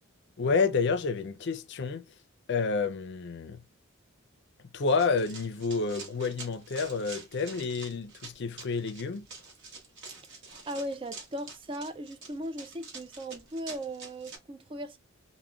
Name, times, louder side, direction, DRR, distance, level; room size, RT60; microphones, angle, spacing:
voice 1, 0.4-2.1 2.5-3.6 4.7-9.3, left 4 dB, 55° left, 0.5 m, -29 dB
Run, 4.9-14.4, right 4 dB, 60° right, 1.0 m, -46 dB
voice 2, 10.7-15.0, right 1 dB, 25° right, 0.4 m, -38 dB
3.5 x 2.1 x 2.2 m
head